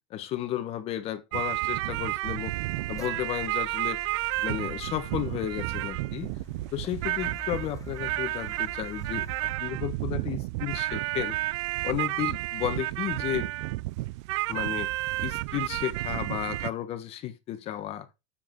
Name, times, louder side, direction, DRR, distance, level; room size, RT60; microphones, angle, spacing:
voice 1, 0.1-2.5 2.9-4.0 4.4-6.3 6.7-9.3 9.6-11.4 11.8-13.5 14.5-14.9 15.2-18.1, left 12 dB, 40° left, 1.1 m, -33 dB
sound 1, 1.3-16.7, right 19 dB, 65° right, 0.5 m, -31 dB
Car, 2.3-9.5, left 7 dB, 20° left, 0.8 m, -48 dB
7.4 x 7.2 x 4.5 m
supercardioid pair, 135°, 16 cm